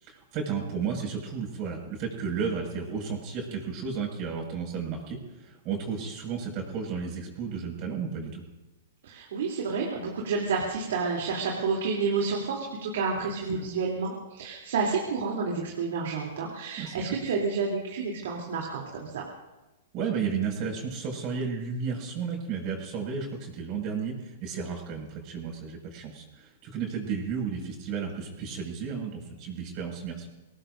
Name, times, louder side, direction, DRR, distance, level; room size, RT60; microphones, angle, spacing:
voice 1, 0.0-8.4 13.5-13.6 16.8-17.1 19.9-30.3, right 6 dB, 40° right, 1 dB, 5.9 m, -33 dB
voice 2, 9.0-19.2, right 4 dB, 70° right, -2 dB, 3.2 m, -30 dB
24.5 x 18.0 x 2.7 m, 1.1 s
hypercardioid pair, 130°, 0 cm